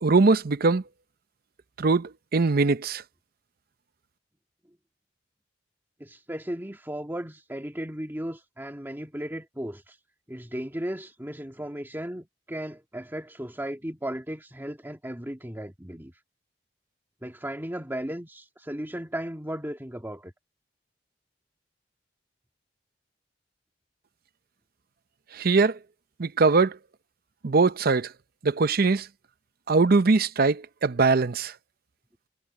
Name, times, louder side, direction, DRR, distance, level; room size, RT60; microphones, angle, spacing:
voice 1, 0.0-0.8 1.8-3.0 25.3-25.8 26.2-26.8 27.4-28.1 28.4-29.1 29.7-31.5, right 3 dB, 55° right, 0.7 m, -21 dB
voice 2, 6.0-10.0 10.3-16.1 17.2-20.3, right 1 dB, 10° right, 2.2 m, -35 dB
head